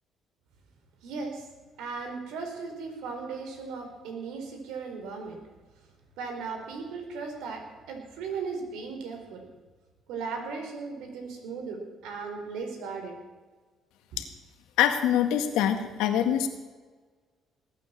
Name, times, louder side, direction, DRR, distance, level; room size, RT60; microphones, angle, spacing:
voice 1, 1.0-1.5 1.8-5.4 6.2-9.5 10.1-13.2, right 4 dB, 85° right, 4 dB, 4.1 m, -37 dB
voice 2, 14.8-16.5, left 10 dB, 90° left, 7 dB, 1.9 m, -24 dB
20.0 x 9.3 x 7.4 m, 1.4 s
cardioid pair, 95°, 0 cm